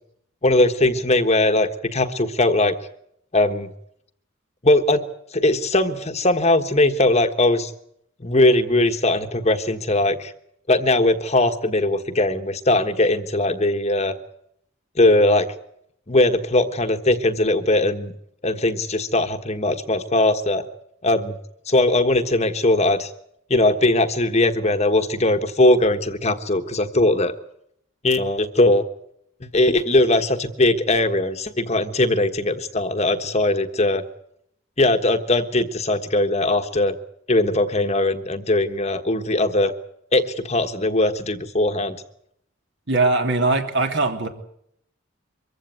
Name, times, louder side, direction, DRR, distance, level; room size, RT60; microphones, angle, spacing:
voice 1, 0.4-2.8 3.3-3.7 4.6-5.0 5.3-7.7 8.2-10.3 10.7-14.1 15.0-15.5 16.1-18.1 18.4-20.6 21.0-21.3 21.7-23.1 23.5-27.3 28.0-28.8 29.5-34.0 34.8-36.9 37.3-39.7 40.1-42.0, left 2 dB, 30° left, 8 dB, 1.4 m, -20 dB
voice 2, 42.9-44.3, right 3 dB, 60° right, 5 dB, 2.9 m, -20 dB
24.0 x 15.5 x 9.4 m, 0.72 s
head